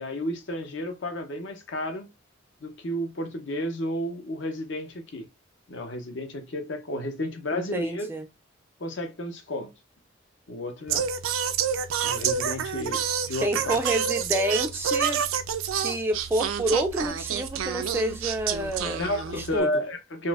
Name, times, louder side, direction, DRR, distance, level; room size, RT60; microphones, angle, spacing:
voice 1, 0.0-2.1 2.6-5.3 5.7-8.1 8.8-9.7 10.5-11.1 12.0-13.8 19.0-20.3, left 1 dB, 60° left, 0.7 m, -32 dB
voice 2, 7.5-8.2 13.4-15.2 15.8-19.0 19.3-19.7, right 1 dB, 10° right, 0.3 m, -28 dB
Singing, 10.9-19.6, right 7 dB, 80° right, 0.4 m, -28 dB
3.9 x 2.5 x 2.4 m
head